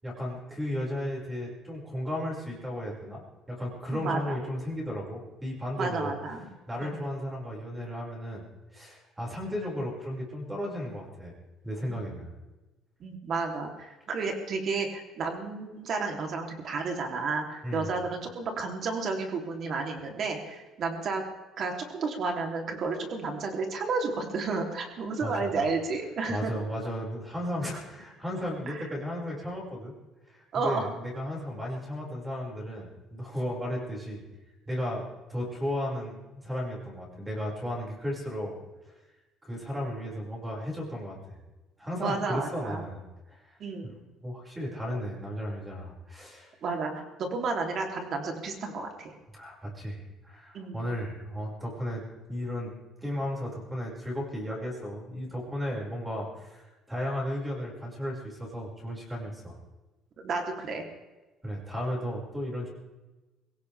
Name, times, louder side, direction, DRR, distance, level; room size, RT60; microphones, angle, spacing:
voice 1, 0.0-3.2 3.5-6.2 6.7-8.4 8.7-11.3 11.6-12.3 17.6-17.9 25.2-25.6 26.3-29.9 30.3-34.2 34.7-35.0 35.3-38.6 39.4-41.2 41.8-43.0 43.3-43.6 44.2-46.5 49.3-52.0 52.3-52.7 53.0-59.6 61.4-62.7, equal, 10° right, -3 dB, 5.6 m, -34 dB
voice 2, 3.9-4.4 5.8-6.5 6.8-7.0 11.9-12.2 13.0-21.2 21.6-26.5 28.7-28.8 30.5-30.9 42.0-42.9 43.6-44.0 46.6-46.9 47.2-49.1 50.5-50.8 60.2-60.8, right 4 dB, 45° right, 3 dB, 3.2 m, -32 dB
23.0 x 17.0 x 3.5 m, 1.1 s
cardioid pair, 160°, 0 cm